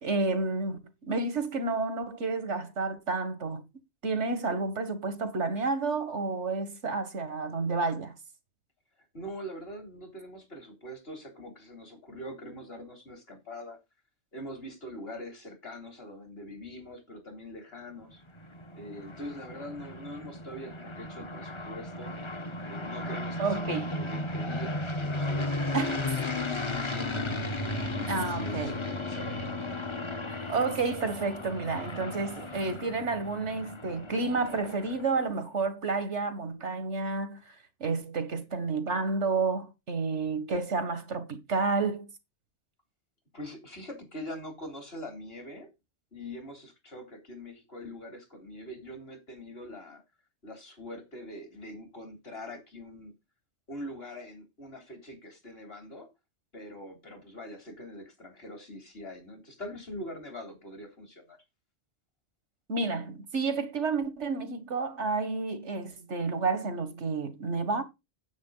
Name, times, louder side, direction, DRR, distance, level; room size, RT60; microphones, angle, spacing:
voice 1, 0.0-3.6 4.0-8.1 23.4-23.9 25.7-26.1 28.1-28.8 30.3-37.6 37.8-42.1 62.7-67.8, right 3 dB, 85° right, 2.0 m, -30 dB
voice 2, 9.1-13.8 14.3-18.2 18.7-22.2 22.6-27.3 27.9-29.7 43.3-45.7 46.1-50.0 50.4-53.1 53.7-56.1 56.5-61.4, left 1 dB, 60° left, 3.7 m, -43 dB
sound 1, 18.1-35.3, left 2 dB, 25° left, 1.2 m, -35 dB
9.5 x 8.3 x 3.9 m
omnidirectional pair, 1.2 m